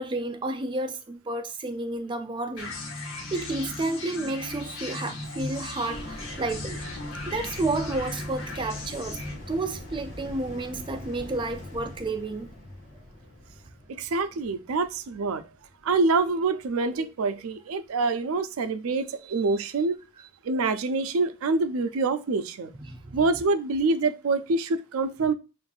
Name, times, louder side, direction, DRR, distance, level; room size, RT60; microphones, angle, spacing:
voice 1, 0.0-2.8 3.3-6.8 7.3-9.2 9.5-12.5 17.0-17.1 22.8-23.3, right 2 dB, 25° right, 0.4 m, -31 dB
sound 1, 2.6-9.4, left 2 dB, 65° left, 1.1 m, -37 dB
sound 2, 5.9-16.6 17.0-17.1, left 1 dB, 35° left, 1.3 m, -42 dB
voice 2, 13.9-15.4 15.8-19.9 20.4-22.7 23.1-25.3, right 3 dB, 85° right, 0.4 m, -26 dB
6.9 x 2.5 x 2.4 m
head